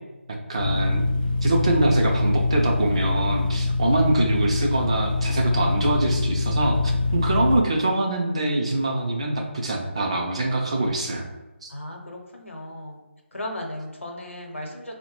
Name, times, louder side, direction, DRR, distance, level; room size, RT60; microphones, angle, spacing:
voice 1, 0.5-1.0 1.4-11.3 11.6-11.7, right 2 dB, 30° right, 1 dB, 0.3 m, -24 dB
sound 1, 0.6-7.6, left 3 dB, 45° left, 0.5 m, -24 dB
voice 2, 11.7-13.0 13.3-15.0, left 1 dB, 75° left, 1 dB, 0.8 m, -35 dB
3.4 x 2.1 x 2.9 m, 1.1 s
figure-of-eight pair, 155°, 7 cm